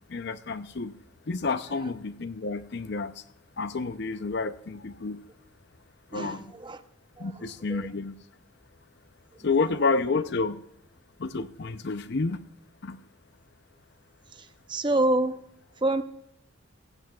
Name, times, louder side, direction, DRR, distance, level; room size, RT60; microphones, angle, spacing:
voice 1, 0.1-0.9 1.3-3.1 3.6-5.2 6.1-6.5 7.2-8.1 9.4-10.6 11.2-12.4 12.8-13.0, left 4 dB, 55° left, 12 dB, 0.6 m, -29 dB
voice 2, 6.1-6.8 7.2-7.3 7.7-7.8 14.7-15.4 15.8-16.0, right 2 dB, 25° right, 10 dB, 0.6 m, -26 dB
16.0 x 16.0 x 2.4 m, 0.78 s
head